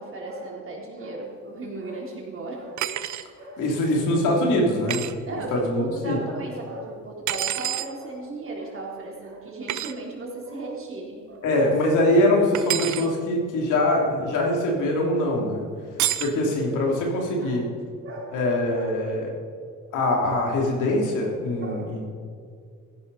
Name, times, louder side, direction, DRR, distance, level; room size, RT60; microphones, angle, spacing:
voice 1, 0.0-2.9 3.4-3.7 4.1-4.3 5.2-11.4 16.0-17.0 17.4-17.7 18.0-18.4 18.7-18.9 21.6-22.0, right 2 dB, 45° right, -2 dB, 3.8 m, -36 dB
sound 1, 2.8-3.3 4.9-5.1 7.3-7.9 9.7-9.9 12.5-13.1 16.0-16.4, right 12 dB, 70° right, 0.7 m, -27 dB
voice 2, 3.6-5.0 5.3-6.2 11.4-15.6 16.2-17.6 18.3-19.3 19.9-22.1, left 1 dB, 90° left, -1 dB, 3.1 m, -23 dB
15.0 x 11.0 x 4.2 m, 2.2 s
cardioid pair, 90°, 30 cm